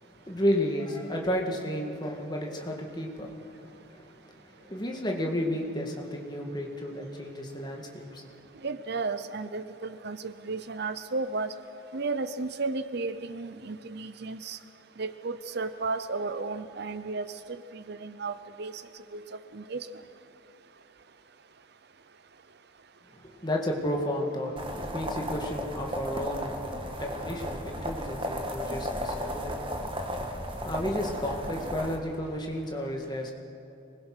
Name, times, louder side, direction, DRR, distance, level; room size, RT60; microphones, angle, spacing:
voice 1, 0.0-4.1 4.6-8.2 23.2-26.6 27.0-33.3, equal, 20° left, 0 dB, 2.1 m, -32 dB
voice 2, 8.6-11.5 11.9-14.6 15.0-18.8 19.1-19.2 19.5-19.9, right 3 dB, 50° right, 12 dB, 0.7 m, -34 dB
sound 1, 24.6-32.0, equal, 25° right, 1.5 m, -34 dB
26.0 x 20.5 x 6.2 m, 2.8 s
head